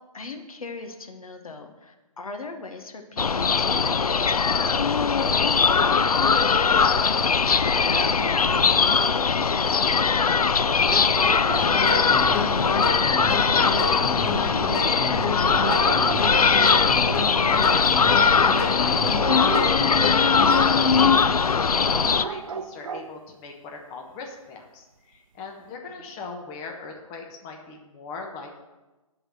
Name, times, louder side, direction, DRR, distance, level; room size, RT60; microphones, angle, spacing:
voice 1, 0.1-6.0 6.8-10.3 25.9-26.1, left 3 dB, 70° left, 5 dB, 1.2 m, -41 dB
sound 1, 3.2-22.2, left 5 dB, 90° left, 0.4 m, -20 dB
sound 2, 7.9-9.3 10.8-12.4 15.6-17.3 19.1-19.8 22.2-23.2, right 6 dB, 65° right, 0.6 m, -35 dB
voice 2, 11.4-19.6 20.0-28.6, left 4 dB, 20° left, 1 dB, 1.0 m, -39 dB
sound 3, 11.5-21.1, left 2 dB, 45° left, 1.7 m, -30 dB
11.0 x 3.9 x 6.3 m, 1.1 s
figure-of-eight pair, 140°, 19 cm